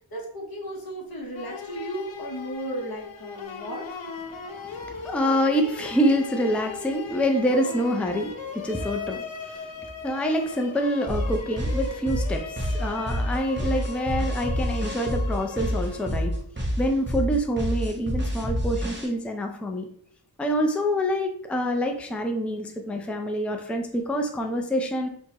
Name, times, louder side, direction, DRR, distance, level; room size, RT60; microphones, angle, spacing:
voice 1, 0.1-3.8, equal, 50° left, -3 dB, 1.1 m, -35 dB
sound 1, 1.3-16.4, left 5 dB, 90° left, 0.6 m, -38 dB
voice 2, 4.7-9.7 10.0-16.3 16.8-19.9 20.4-25.1, equal, 5° left, 3 dB, 0.4 m, -26 dB
sound 2, 11.1-19.1, equal, 25° right, 0.9 m, -27 dB
4.3 x 2.2 x 2.9 m, 0.62 s
wide cardioid pair, 60°, 45 cm